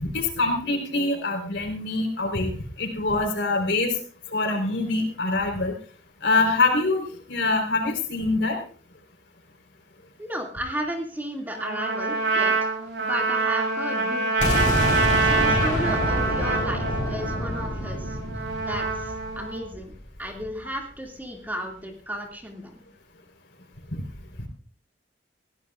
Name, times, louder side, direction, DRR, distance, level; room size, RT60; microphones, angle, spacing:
voice 1, 0.0-2.5 2.8-3.9 4.3-5.7 6.2-8.6, left 3 dB, 80° left, 3 dB, 4.1 m, -24 dB
voice 2, 10.2-12.7 13.0-18.2 18.6-19.9 20.2-22.8, equal, 10° right, 1 dB, 2.4 m, -34 dB
Trumpet, 11.6-19.6, right 4 dB, 70° right, 6.7 m, -26 dB
sound 1, 14.4-20.2, left 1 dB, 45° left, 4.4 m, -27 dB
22.0 x 16.0 x 2.5 m, 0.42 s
head